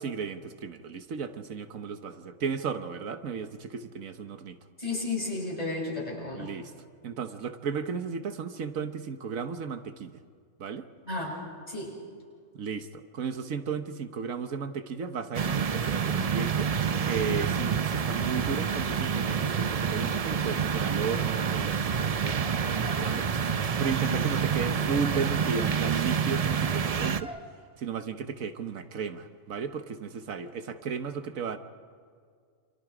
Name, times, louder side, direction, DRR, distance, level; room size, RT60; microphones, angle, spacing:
voice 1, 0.0-4.6 6.3-6.7 7.0-10.1 10.6-10.9 12.6-16.7 17.1-27.3 27.8-31.6, right 6 dB, 80° right, 9 dB, 1.5 m, -34 dB
voice 2, 4.8-6.5 11.0-11.4 11.7-12.0 24.1-24.2, left 2 dB, 30° left, -2 dB, 7.0 m, -33 dB
sound 1, 15.3-27.2, right 7 dB, 40° right, 0.5 m, -28 dB
sound 2, 22.7-23.4 24.2-24.7 25.0-25.4 27.2-27.5, equal, 5° right, 3.1 m, -46 dB
28.5 x 27.0 x 5.0 m, 2.1 s
omnidirectional pair, 1.4 m